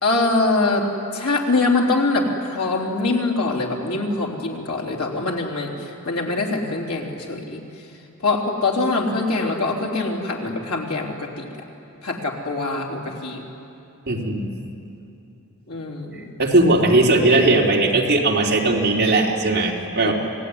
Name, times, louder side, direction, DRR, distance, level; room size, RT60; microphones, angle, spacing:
voice 1, 0.0-7.6 8.2-11.5 12.0-13.4 15.7-16.3 20.1-20.2, left 3 dB, 80° left, 0 dB, 3.7 m, -23 dB
voice 2, 14.1-14.5 16.1-20.1, right 2 dB, 50° right, -2 dB, 3.2 m, -18 dB
28.0 x 19.0 x 9.8 m, 2.8 s
head